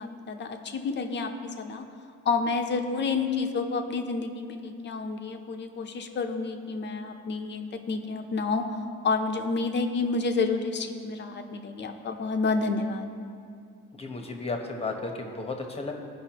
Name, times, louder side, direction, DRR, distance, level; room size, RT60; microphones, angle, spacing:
voice 1, 0.0-1.8 2.2-8.6 9.0-13.1, left 4 dB, 40° left, 5 dB, 0.8 m, -29 dB
voice 2, 13.9-15.9, left 3 dB, 20° left, 3 dB, 1.1 m, -33 dB
16.0 x 5.4 x 3.0 m, 2.4 s
cardioid pair, 110°, 29 cm